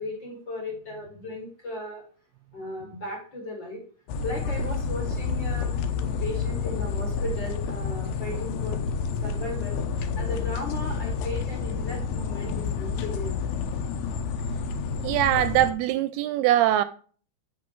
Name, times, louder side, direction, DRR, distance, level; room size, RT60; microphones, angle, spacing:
voice 1, 0.0-2.0 2.5-3.8 4.2-13.5, left 1 dB, 35° left, 1.9 m, -36 dB
sound 1, 4.1-15.7, left 5 dB, 80° left, 2.7 m, -29 dB
voice 2, 15.0-16.8, right 13 dB, 85° right, 2.4 m, -22 dB
8.5 x 6.0 x 3.0 m
omnidirectional pair, 4.7 m